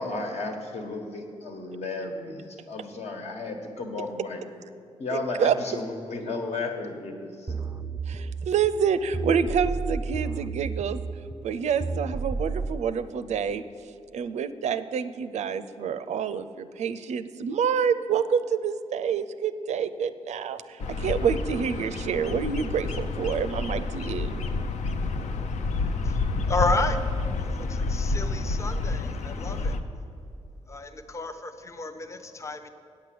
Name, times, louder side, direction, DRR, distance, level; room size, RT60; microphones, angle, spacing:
voice 1, 0.0-2.4 2.7-4.4 5.0-7.3, left 3 dB, 65° left, 3 dB, 1.4 m, -33 dB
voice 2, 5.1-5.5 8.1-11.0 11.4-13.6 14.1-24.3, right 7 dB, 80° right, 13 dB, 0.5 m, -27 dB
sound 1, 7.5-12.8, right 4 dB, 15° right, 0.3 m, -32 dB
Bird vocalization bird call bird song, 20.8-29.8, left 3 dB, 85° left, 0.6 m, -29 dB
voice 3, 25.0-27.0 27.4-29.8 30.7-32.7, left 3 dB, 25° left, 8 dB, 0.6 m, -32 dB
8.8 x 7.5 x 7.7 m, 2.4 s
wide cardioid pair, 125°, 12 cm